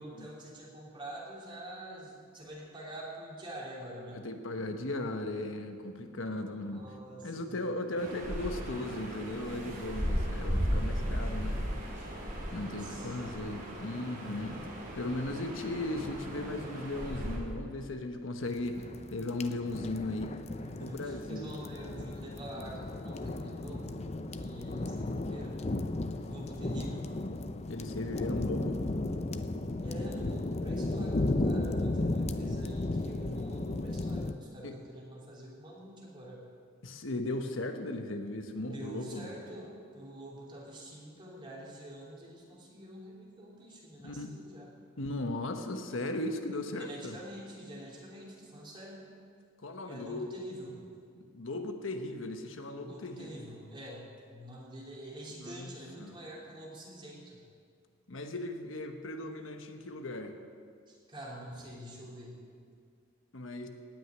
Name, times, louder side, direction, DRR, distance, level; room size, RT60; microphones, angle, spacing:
voice 1, 0.0-4.2 6.3-7.7 12.5-13.1 20.6-24.0 24.3-25.7 26.3-27.1 29.8-36.4 38.7-44.7 46.8-49.1 49.9-50.8 52.8-57.4 60.9-62.4, right 1 dB, 25° right, -4 dB, 3.3 m, -46 dB
voice 2, 4.1-6.9 7.2-11.6 12.5-14.7 14.9-18.8 19.1-20.3 20.8-21.5 27.7-28.8 34.6-34.7 36.8-39.3 44.0-44.3 45.0-47.2 49.6-50.3 51.3-53.4 55.4-55.7 56.0-56.1 58.1-60.3 63.3-63.7, left 2 dB, 80° left, 6 dB, 1.1 m, -37 dB
sound 1, 8.0-17.4, equal, 40° right, 4.3 m, -36 dB
sound 2, 18.5-34.3, left 2 dB, 35° left, 0.6 m, -35 dB
17.5 x 6.4 x 9.4 m, 2.2 s
head